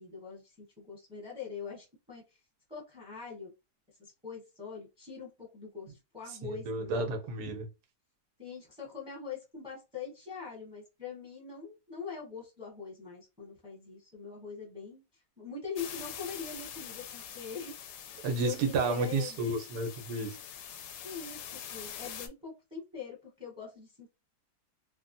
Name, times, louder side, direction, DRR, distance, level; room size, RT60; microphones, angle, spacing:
voice 1, 0.0-2.2 2.7-3.5 4.0-7.1 8.4-15.0 15.4-17.7 18.4-19.4 21.0-24.1, left 6 dB, 5° right, 0.9 m, -43 dB
voice 2, 6.4-7.7 18.2-20.4, right 3 dB, 75° right, 1.3 m, -31 dB
sound 1, 15.8-22.3, left 8 dB, 85° left, 1.2 m, -45 dB
3.4 x 2.1 x 2.6 m
omnidirectional pair, 1.7 m